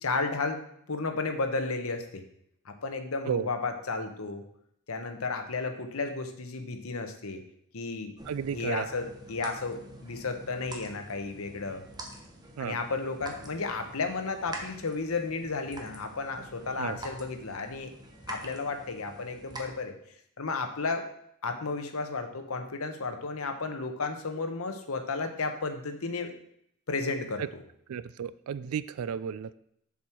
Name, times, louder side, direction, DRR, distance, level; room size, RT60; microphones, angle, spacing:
voice 1, 0.0-2.2 2.6-4.4 4.9-7.4 7.7-8.1 8.5-11.8 12.6-17.9 18.3-19.9 20.4-21.1 21.4-26.3 26.9-27.6, left 3 dB, 70° left, 6 dB, 1.0 m, -33 dB
sound 1, 8.2-19.7, right 1 dB, 20° right, 1.1 m, -46 dB
voice 2, 8.3-8.9 12.6-12.8 16.8-17.0 27.4-27.5 27.9-29.6, right 7 dB, 75° right, 16 dB, 0.3 m, -33 dB
7.1 x 6.3 x 4.5 m, 0.71 s
head